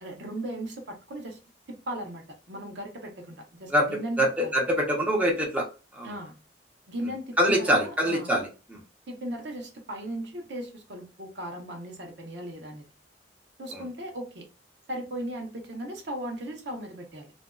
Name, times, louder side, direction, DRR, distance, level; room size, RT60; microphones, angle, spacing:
voice 1, 0.0-1.4 1.7-4.5 6.0-6.4 6.9-8.3 9.1-12.8 13.6-14.5 14.9-17.3, right 1 dB, 75° right, 0.7 m, -37 dB
voice 2, 4.2-5.7 5.9-6.1 7.4-8.8 13.7-13.8, equal, 10° right, 0.6 m, -24 dB
2.5 x 2.2 x 2.2 m
head